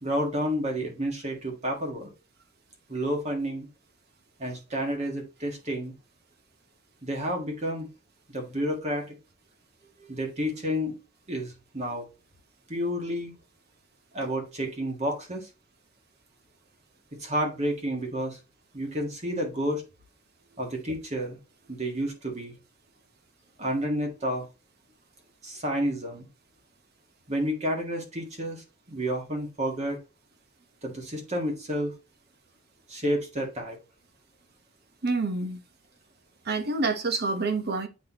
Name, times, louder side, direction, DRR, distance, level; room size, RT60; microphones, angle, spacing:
voice 1, 0.0-2.1 2.9-3.7 4.4-5.9 7.0-7.9 8.3-9.1 10.0-11.0 11.3-12.0 12.7-13.3 14.1-15.5 17.1-18.4 18.7-19.8 20.6-21.4 21.7-22.5 23.6-24.5 25.4-26.2 27.3-30.0 30.8-31.9 32.9-33.8, equal, 35° right, 1.7 m, -30 dB
voice 2, 35.0-35.6 36.4-37.9, right 3 dB, 50° right, 1.0 m, -27 dB
8.3 x 4.1 x 2.9 m
head